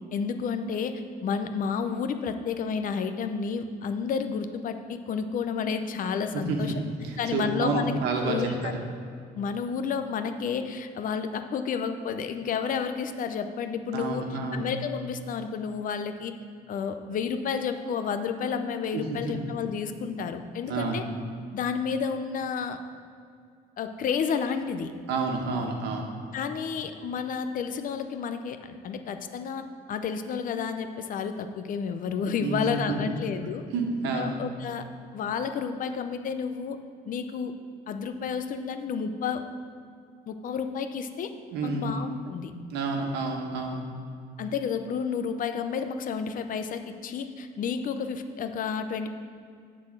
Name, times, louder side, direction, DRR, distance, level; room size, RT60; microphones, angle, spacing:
voice 1, 0.1-6.7 7.2-7.9 8.2-8.7 9.4-14.2 14.5-16.3 16.7-21.0 21.5-22.8 23.8-24.9 26.3-33.6 34.1-34.9 35.1-36.8 37.1-37.5 37.9-39.4 40.3-41.3 41.6-42.5 44.4-49.1, left 6 dB, 55° left, 8 dB, 0.6 m, -31 dB
voice 2, 6.3-8.7 13.9-14.6 18.9-19.2 20.7-21.0 25.1-26.1 32.4-33.1 33.7-34.4 41.5-41.9 42.7-43.8, right 3 dB, 85° right, 2 dB, 1.3 m, -29 dB
9.5 x 4.1 x 6.5 m, 2.3 s
cardioid pair, 110°, 17 cm